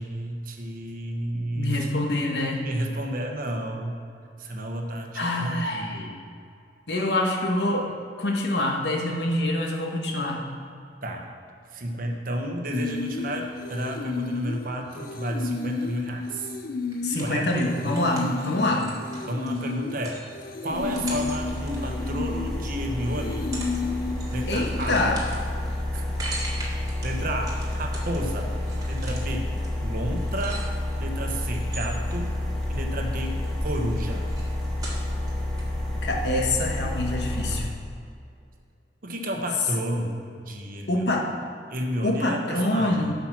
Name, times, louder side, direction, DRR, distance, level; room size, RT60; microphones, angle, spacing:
voice 1, 0.0-1.9 2.6-4.0 4.4-6.2 11.0-11.3 11.7-16.5 17.2-17.7 19.3-20.2 20.6-23.5 24.3-25.0 25.9-26.0 27.0-28.5 28.9-29.5 29.8-30.6 31.0-32.4 32.7-34.3 39.0-41.1 41.7-43.0, right 1 dB, 55° right, 2 dB, 1.1 m, -31 dB
voice 2, 1.3-2.6 5.2-6.1 6.9-7.9 8.2-10.4 17.0-18.9 24.5-25.2 36.0-37.7 40.9-41.3 42.0-43.1, left 1 dB, 75° left, 2 dB, 1.2 m, -25 dB
sound 1, 12.7-24.9, left 4 dB, 55° left, 0.5 m, -32 dB
sound 2, 16.9-22.7 23.2-23.8 24.1-31.0 31.5-32.8 33.1-35.3 35.6-35.7, right 2 dB, 20° right, 1.7 m, -41 dB
sound 3, 20.7-37.6, left 1 dB, 5° left, 1.5 m, -30 dB
8.5 x 5.6 x 6.0 m, 2.4 s
head